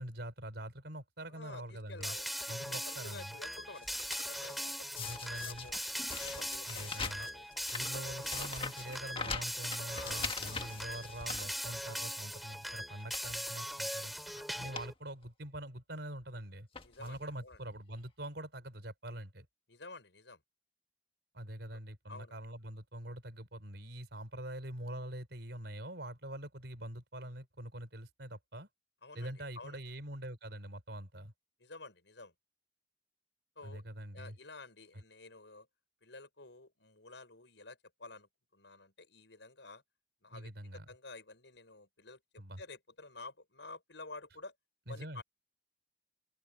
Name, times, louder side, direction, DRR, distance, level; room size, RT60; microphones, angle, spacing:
voice 1, 0.0-2.2 2.5-3.3 5.0-5.7 6.7-7.3 7.7-16.7 17.0-19.5 21.3-28.7 29.1-31.3 33.6-34.4 40.3-40.9 42.4-42.6 44.9-45.2, right 1 dB, 65° right, 6.0 m, -44 dB
voice 2, 1.3-5.7 6.2-7.5 9.9-10.8 14.3-14.7 16.8-17.6 19.7-20.4 22.1-22.4 29.0-29.8 31.6-32.3 33.5-33.8 34.1-35.7 36.0-39.8 40.2-42.2 42.6-44.5 44.9-45.2, left 3 dB, 75° left, 6.7 m, -51 dB
sound 1, 2.0-2.4 3.0-3.3 3.6-4.6 5.0-12.1 12.4-12.6 13.0-13.4 14.2-14.3 14.6-14.9 15.2-15.3 16.2-16.4 16.7-17.2 18.0-18.1 18.3-18.4, left 5 dB, 30° left, 1.7 m, -43 dB
sound 2, 2.0-14.9, equal, ahead, 3.0 m, -40 dB
open air
head